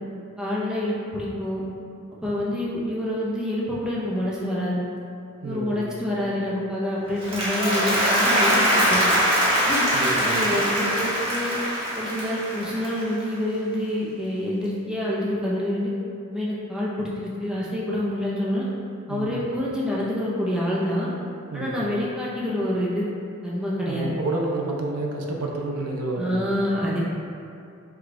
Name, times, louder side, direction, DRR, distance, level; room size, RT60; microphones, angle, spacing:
voice 1, 0.4-1.6 2.2-4.8 5.4-9.0 9.6-9.8 10.2-11.5 11.9-15.9 16.3-18.7 19.1-21.1 21.5-23.1 23.4-24.1 26.2-27.0, left 1 dB, 5° right, -7 dB, 0.6 m, -27 dB
voice 2, 5.4-6.0 9.9-10.4 19.1-19.5 21.5-21.8 23.9-26.6, right 2 dB, 85° right, -1 dB, 0.5 m, -30 dB
Applause, 7.1-13.4, equal, 25° right, 1.0 m, -23 dB
4.9 x 2.3 x 3.7 m, 2.5 s
head